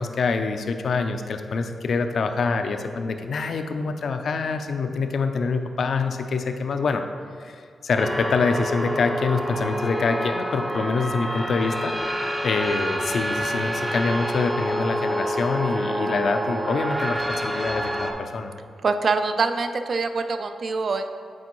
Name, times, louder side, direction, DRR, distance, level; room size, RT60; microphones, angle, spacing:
voice 1, 0.0-7.0 7.4-11.9 12.4-18.5, left 4 dB, 65° left, 7 dB, 0.4 m, -25 dB
sound 1, 8.0-18.1, equal, 5° right, 0.6 m, -27 dB
voice 2, 18.8-21.1, right 4 dB, 50° right, 8 dB, 0.3 m, -24 dB
8.3 x 4.4 x 3.0 m, 2.2 s
wide cardioid pair, 115°, 0 cm